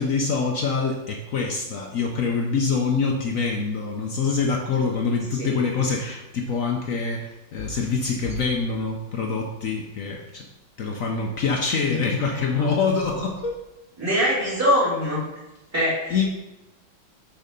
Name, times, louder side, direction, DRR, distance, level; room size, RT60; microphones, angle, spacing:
voice 1, 0.0-10.5 10.8-13.6 16.1-16.3, left 4 dB, 60° left, 1 dB, 0.9 m, -25 dB
voice 2, 14.0-15.3 15.7-16.3, equal, 5° right, -8 dB, 2.6 m, -23 dB
6.8 x 4.9 x 5.2 m, 0.99 s
omnidirectional pair, 2.2 m